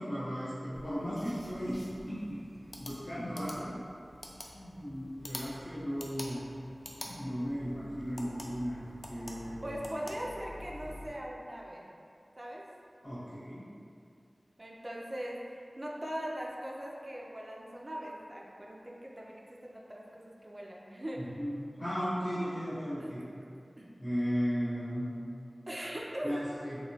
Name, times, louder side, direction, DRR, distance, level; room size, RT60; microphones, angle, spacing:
voice 1, 0.0-1.7 2.1-2.4 2.8-3.7 4.5-6.4 7.0-8.8 9.1-9.9 13.0-13.6 21.2-23.2 24.0-25.0 26.2-26.8, equal, 75° left, -13 dB, 1.0 m, -35 dB
sound 1, 0.7-11.1, left 1 dB, 60° left, 0.3 m, -48 dB
voice 2, 9.6-11.8 12.4-12.6 14.6-21.4 23.0-23.1 23.8-23.9 25.7-26.4, equal, 35° right, -3 dB, 0.4 m, -40 dB
3.0 x 2.2 x 2.7 m, 2.5 s
wide cardioid pair, 50°, 0 cm